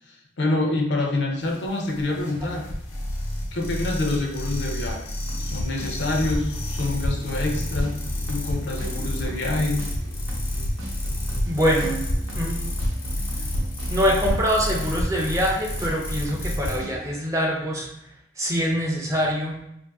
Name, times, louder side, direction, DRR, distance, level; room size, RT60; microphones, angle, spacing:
voice 1, 0.1-2.7 3.5-5.0 5.4-8.0 8.3-9.8, left 2 dB, 55° left, 2 dB, 0.5 m, -26 dB
sound 1, 1.4-16.8, left 1 dB, 90° left, 0.8 m, -29 dB
sound 2, 5.2-17.2, right 1 dB, 90° right, 0.8 m, -37 dB
voice 2, 11.5-12.1 12.3-12.8 13.9-17.9 18.4-19.6, equal, 15° right, -1 dB, 0.5 m, -24 dB
2.6 x 2.5 x 3.4 m, 0.80 s
head